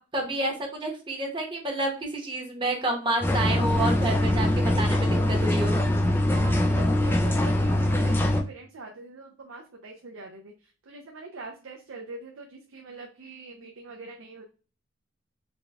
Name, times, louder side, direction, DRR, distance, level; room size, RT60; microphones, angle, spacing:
voice 1, 0.1-5.8, right 2 dB, 25° right, 1 dB, 0.9 m, -29 dB
sound 1, 3.2-8.4, left 1 dB, 10° left, 0.3 m, -23 dB
voice 2, 6.3-14.4, right 3 dB, 75° right, 2 dB, 0.5 m, -44 dB
4.1 x 2.2 x 3.4 m, 0.36 s
head